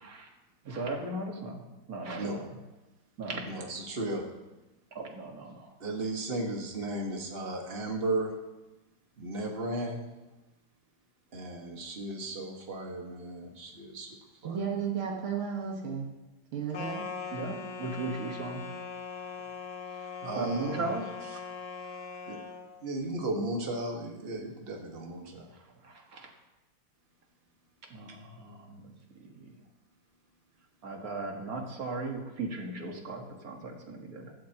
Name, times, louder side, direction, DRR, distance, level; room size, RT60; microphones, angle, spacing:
voice 1, 0.6-2.4 3.2-3.7 4.9-5.7 17.3-18.7 20.0-21.1 25.8-26.3 27.9-28.9 29.2-29.5 30.8-34.3, right 3 dB, 45° right, 1 dB, 2.0 m, -37 dB
voice 2, 3.4-4.3 5.8-8.3 9.2-10.0 11.3-14.2 14.4-14.6 20.2-21.4 22.3-22.4 22.8-25.5 28.1-28.2, right 2 dB, 30° right, 1 dB, 1.7 m, -35 dB
voice 3, 14.4-16.1 16.5-17.0, right 7 dB, 85° right, -1 dB, 2.4 m, -33 dB
sound 1, 16.7-22.7, left 5 dB, 45° left, 1.0 m, -40 dB
15.5 x 12.5 x 3.0 m, 1.1 s
omnidirectional pair, 2.3 m